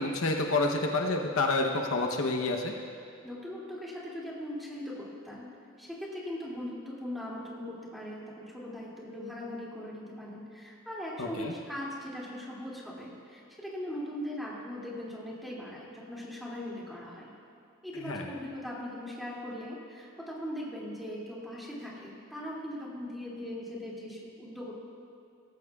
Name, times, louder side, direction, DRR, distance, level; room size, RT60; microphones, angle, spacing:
voice 1, 0.0-2.7 11.2-11.5 18.0-18.3, left 2 dB, 65° left, 2 dB, 0.9 m, -28 dB
voice 2, 3.2-5.5 5.8-17.3 17.8-24.7, left 1 dB, ahead, -6 dB, 2.5 m, -40 dB
18.5 x 14.5 x 2.4 m, 2.5 s
head